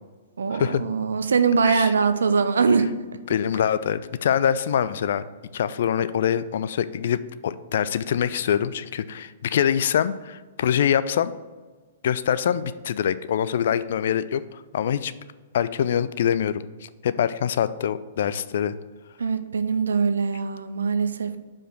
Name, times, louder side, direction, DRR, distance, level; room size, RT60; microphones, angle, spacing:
voice 1, 0.4-2.9 19.2-21.4, right 5 dB, 65° right, 10 dB, 0.5 m, -22 dB
voice 2, 3.3-5.2 5.5-11.3 12.0-15.1 15.5-18.7, left 9 dB, 55° left, 14 dB, 0.3 m, -24 dB
4.9 x 4.9 x 6.0 m, 1.3 s
figure-of-eight pair, 110°, 0 cm